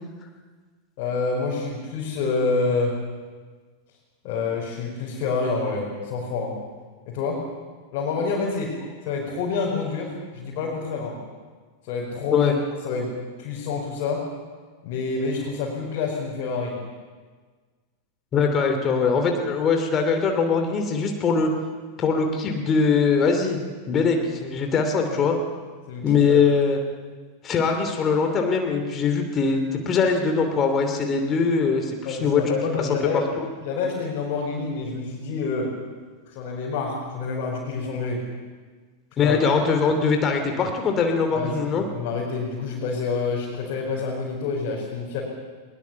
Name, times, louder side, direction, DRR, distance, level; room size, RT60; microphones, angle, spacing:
voice 1, 1.0-2.9 4.2-6.5 7.1-7.4 7.9-8.7 9.0-11.2 11.9-12.5 12.8-13.1 13.4-14.2 14.8-16.7 25.1-25.2 25.9-26.4 32.0-33.3 33.6-35.7 36.3-38.2 39.2-39.4 41.3-45.2, left 4 dB, 45° left, -4 dB, 5.1 m, -27 dB
voice 2, 18.3-21.5 22.0-23.6 23.9-25.4 26.0-26.8 27.4-32.5 39.2-41.8, left 5 dB, 25° left, 4 dB, 2.9 m, -22 dB
21.0 x 21.0 x 7.2 m, 1.5 s
figure-of-eight pair, 90°, 0 cm